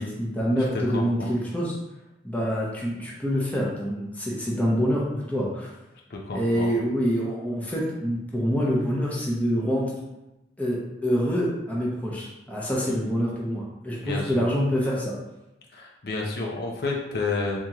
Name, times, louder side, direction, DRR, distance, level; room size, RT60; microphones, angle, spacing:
voice 1, 0.0-1.8 2.2-5.7 6.3-9.9 10.6-15.1, equal, 10° left, -5 dB, 0.7 m, -26 dB
voice 2, 0.6-1.3 6.1-6.7 14.0-14.5 15.7-17.6, left 3 dB, 55° left, -1 dB, 0.5 m, -30 dB
3.6 x 2.9 x 2.9 m, 0.97 s
head